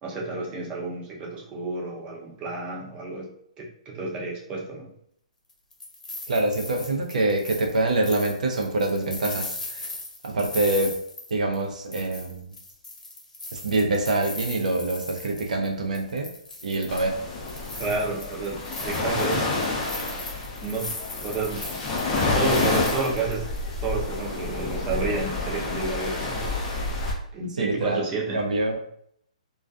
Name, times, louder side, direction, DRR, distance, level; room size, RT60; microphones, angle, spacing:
voice 1, 0.0-3.3 3.6-4.9 17.7-19.4 20.6-20.9 21.2-21.7 22.3-23.5 23.8-26.4 27.3-28.4, right 3 dB, 25° right, -1 dB, 0.6 m, -30 dB
sound 1, 5.5-11.6 11.9-15.7 15.9-17.1 17.5-23.6, left 2 dB, 90° left, 0.7 m, -39 dB
voice 2, 6.3-9.9 10.2-11.0 11.3-12.5 13.5-16.3 16.6-17.2 27.6-28.0 28.3-28.8, right 2 dB, 75° right, 1 dB, 0.6 m, -25 dB
sound 2, 16.9-27.1, left 2 dB, 20° left, 0.5 m, -29 dB
2.3 x 2.3 x 2.4 m, 0.68 s
hypercardioid pair, 140°, 4 cm